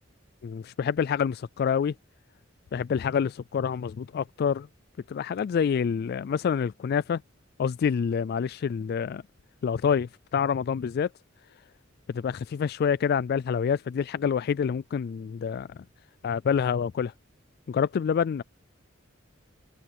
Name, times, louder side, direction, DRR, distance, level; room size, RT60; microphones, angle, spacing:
voice 1, 0.4-1.9 2.7-4.7 5.1-7.2 7.6-9.2 9.6-11.1 12.1-15.8 16.2-17.1 17.7-18.4, left 7 dB, 55° left, 0.3 m, -27 dB
head